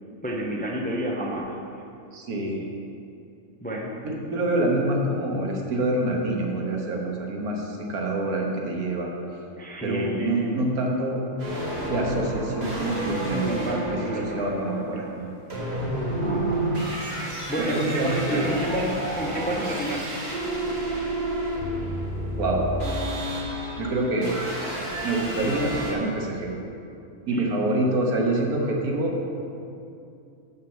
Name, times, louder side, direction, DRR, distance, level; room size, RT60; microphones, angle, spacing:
voice 1, 0.2-1.8 3.6-4.0 9.6-10.6 13.3-14.4 14.7-15.1 16.1-16.6 17.5-20.1 27.3-27.5, equal, 10° left, -1 dB, 0.6 m, -30 dB
voice 2, 2.1-2.6 4.0-9.1 9.8-11.2 11.9-14.0 14.3-15.3 16.6-16.7 17.7-18.5 22.4-22.7 23.8-24.3 25.0-26.5 27.3-29.1, right 2 dB, 85° right, 0 dB, 1.7 m, -26 dB
sound 1, 11.4-25.9, right 1 dB, 45° right, 1.9 m, -30 dB
6.7 x 6.5 x 7.2 m, 2.6 s
omnidirectional pair, 1.5 m